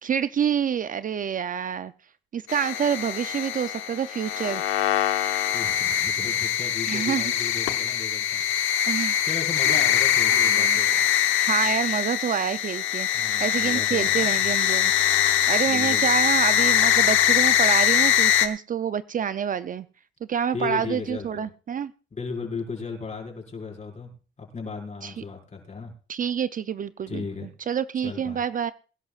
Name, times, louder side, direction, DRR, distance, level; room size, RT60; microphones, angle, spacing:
voice 1, 0.0-1.9 2.3-4.6 6.9-7.3 8.9-9.2 9.6-9.8 10.5-10.8 11.3-14.9 15.5-19.9 20.3-21.9 25.0-25.2 26.1-28.7, right 8 dB, 45° right, 14 dB, 0.5 m, -27 dB
sound 1, 2.5-18.5, left 10 dB, 90° left, 1.0 m, -23 dB
voice 2, 5.5-8.4 9.2-11.0 13.1-14.5 15.7-16.1 20.5-21.4 22.1-24.1 24.4-25.9 27.1-27.5 28.0-28.4, left 4 dB, 35° left, 0 dB, 5.2 m, -36 dB
23.5 x 11.0 x 2.4 m, 0.35 s
cardioid pair, 90°, 20 cm